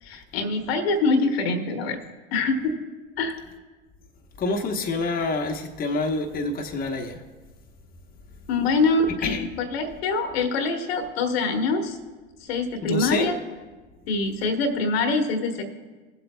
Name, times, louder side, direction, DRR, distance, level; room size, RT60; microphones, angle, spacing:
voice 1, 0.0-2.0 2.3-2.7 3.2-3.3 8.5-12.0 12.4-13.3 14.1-15.6, left 3 dB, 75° left, 5 dB, 1.3 m, -24 dB
voice 2, 4.4-7.2 9.2-9.5 12.8-13.3, left 3 dB, 30° left, 2 dB, 1.0 m, -27 dB
22.0 x 7.8 x 2.2 m, 1.3 s
hypercardioid pair, 85°, 31 cm